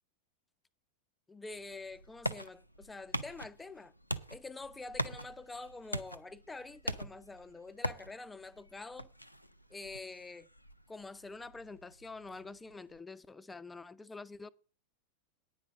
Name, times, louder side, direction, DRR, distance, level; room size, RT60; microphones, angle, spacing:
voice 1, 1.3-3.9 4.3-9.1 9.7-10.5 10.9-14.5, left 3 dB, 10° left, 0.5 m, -46 dB
sound 1, 1.5-13.0, equal, 90° left, 0.6 m, -43 dB
9.6 x 5.6 x 8.1 m
figure-of-eight pair, 90°, 0 cm